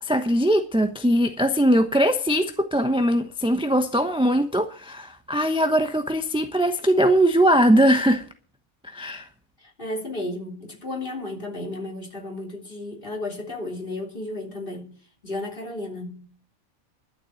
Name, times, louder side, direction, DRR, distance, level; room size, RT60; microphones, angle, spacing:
voice 1, 0.0-8.2 8.8-9.2, equal, 5° right, 0.8 m, -21 dB
voice 2, 9.6-15.0 15.2-16.3, left 2 dB, 40° left, 3.5 m, -33 dB
12.0 x 7.4 x 8.9 m
omnidirectional pair, 1.5 m